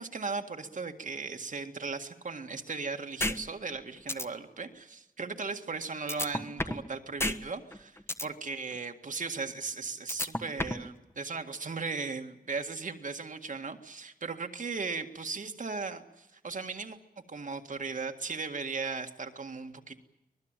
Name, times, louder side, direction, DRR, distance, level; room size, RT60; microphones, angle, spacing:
voice 1, 0.0-17.0 17.3-20.0, right 4 dB, 60° right, 6 dB, 1.9 m, -37 dB
sound 1, 3.2-3.4 3.7-3.8 4.1-4.2 6.1-6.9 7.2-7.4 7.7-8.3 10.1-10.9, left 1 dB, 15° left, 1.3 m, -30 dB
24.5 x 19.5 x 9.1 m, 0.94 s
wide cardioid pair, 115°, 15 cm